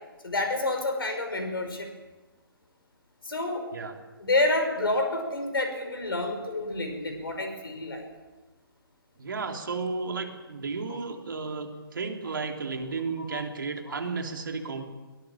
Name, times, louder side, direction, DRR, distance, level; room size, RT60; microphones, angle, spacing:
voice 1, 0.2-1.9 3.2-3.7 4.2-8.1 10.9-11.0 13.3-13.4 13.9-14.0, left 2 dB, 70° left, 5 dB, 5.5 m, -28 dB
voice 2, 9.2-14.9, right 4 dB, 60° right, 4 dB, 3.2 m, -33 dB
22.5 x 18.5 x 7.5 m, 1.1 s
figure-of-eight pair, 130°, 13 cm